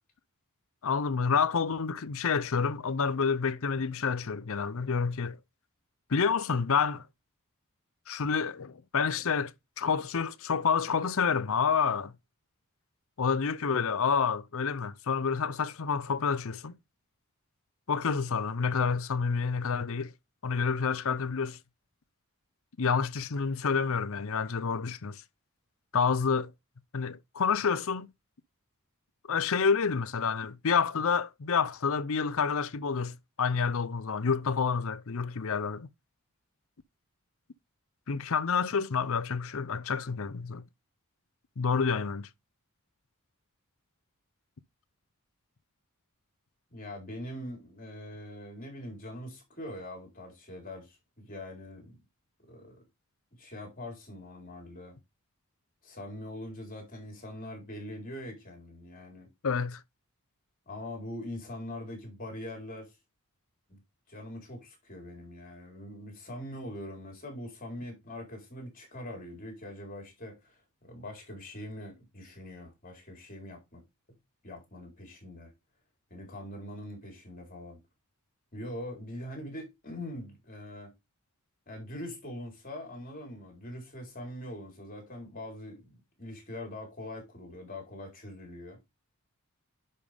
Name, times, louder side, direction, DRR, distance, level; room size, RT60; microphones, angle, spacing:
voice 1, 0.8-5.4 6.1-7.0 8.1-12.1 13.2-16.8 17.9-20.1 20.4-21.6 22.8-25.2 25.9-26.5 26.9-28.1 29.3-35.9 38.1-40.6 41.6-42.3 59.4-59.8, left 5 dB, 65° left, 0.6 m, -28 dB
voice 2, 46.7-52.0 52.5-52.8 53.4-55.0 55.8-59.3 60.7-62.9 63.7-63.8 64.1-73.8 74.4-75.5 76.1-77.8 78.5-80.9 81.7-88.8, left 1 dB, 40° left, 4.2 m, -43 dB
10.5 x 5.5 x 3.5 m
head